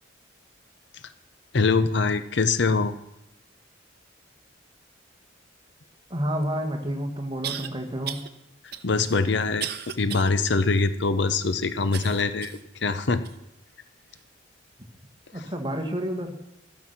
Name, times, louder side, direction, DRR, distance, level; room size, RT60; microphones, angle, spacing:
voice 1, 1.5-2.9 8.8-9.7 10.0-13.2, left 4 dB, 60° left, 12 dB, 0.7 m, -23 dB
voice 2, 6.1-8.2 15.3-16.3, equal, 25° right, 3 dB, 1.8 m, -29 dB
sound 1, 6.4-6.5 7.4-7.7 8.1-8.3 8.7-10.3 10.8-10.9 11.9-12.7 13.2-13.4 14.1-14.2, right 9 dB, 55° right, 0.8 m, -35 dB
13.5 x 12.0 x 5.9 m, 0.84 s
head